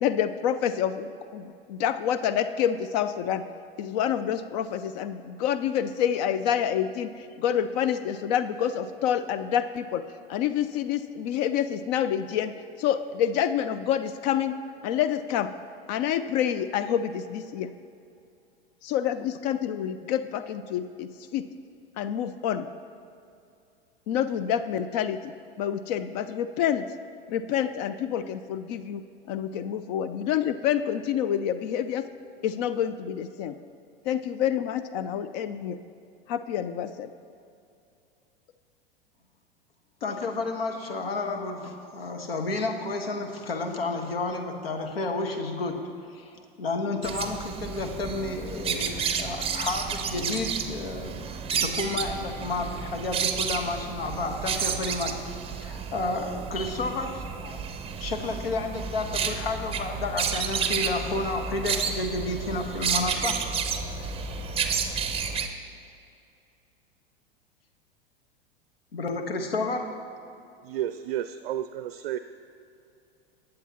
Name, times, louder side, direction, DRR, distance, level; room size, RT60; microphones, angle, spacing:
voice 1, 0.0-3.4 3.8-10.0 10.3-12.5 12.8-14.6 14.8-15.5 15.9-17.7 18.8-21.5 22.0-22.7 24.1-26.9 27.3-29.0 29.3-32.0 32.4-33.6 34.0-35.8 36.3-37.1, left 9 dB, 45° left, 11 dB, 0.5 m, -27 dB
voice 2, 40.0-45.8 46.1-55.2 55.6-57.6 58.0-63.4 68.9-69.9, left 3 dB, 75° left, 4 dB, 1.3 m, -31 dB
sound 1, 47.0-65.5, right 6 dB, 20° right, 0.7 m, -31 dB
voice 3, 70.6-72.2, right 11 dB, 60° right, 11 dB, 0.4 m, -31 dB
19.5 x 7.5 x 2.9 m, 2.6 s
figure-of-eight pair, 90°, 30 cm